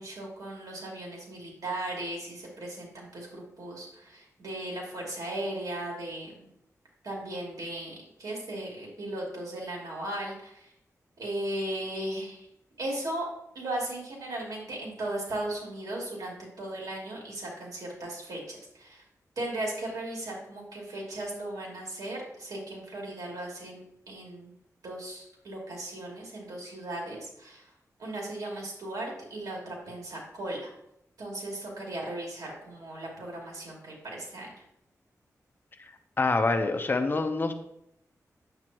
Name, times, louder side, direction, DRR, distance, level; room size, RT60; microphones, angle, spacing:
voice 1, 0.0-6.5 7.0-10.7 11.2-12.5 12.8-13.3 13.5-19.0 19.4-24.5 24.8-27.7 28.0-30.7 31.2-34.5, right 1 dB, 80° right, -2 dB, 2.9 m, -37 dB
voice 2, 36.2-37.5, left 3 dB, 35° left, 7 dB, 0.8 m, -26 dB
8.9 x 7.9 x 3.0 m, 0.79 s
wide cardioid pair, 105°, 6 cm